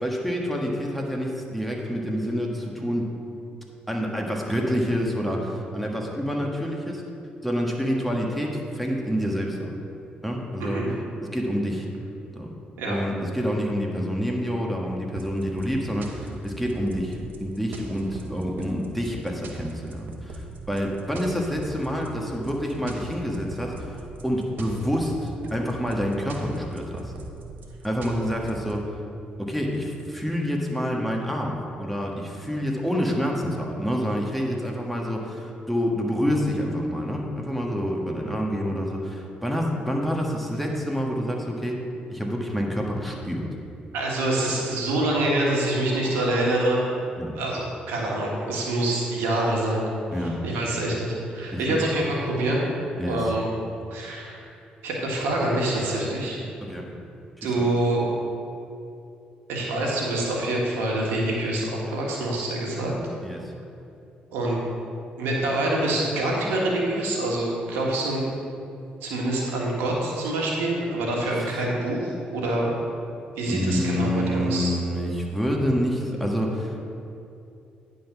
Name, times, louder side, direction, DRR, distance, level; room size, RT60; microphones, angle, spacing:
voice 1, 0.0-3.1 3.9-7.0 7.4-9.7 10.2-10.8 11.3-11.9 12.3-12.5 12.9-27.1 27.8-29.0 29.4-41.8 42.1-43.5 47.2-47.3 50.1-50.3 51.5-51.8 53.0-53.2 56.6-56.9 57.6-57.7 63.2-63.5 71.3-71.4 73.5-76.8, equal, ahead, -1 dB, 1.5 m, -27 dB
sound 1, 15.2-28.7, right 2 dB, 65° right, 0.9 m, -40 dB
voice 2, 43.9-46.8 47.3-49.8 50.2-52.7 53.0-53.4 53.9-54.5 54.8-56.4 57.4-58.0 59.5-62.9 64.3-64.6 65.2-68.2 69.0-72.7 73.4-74.7, right 1 dB, 85° right, -2 dB, 1.4 m, -26 dB
10.0 x 3.9 x 6.0 m, 2.6 s
supercardioid pair, 60°, 4 cm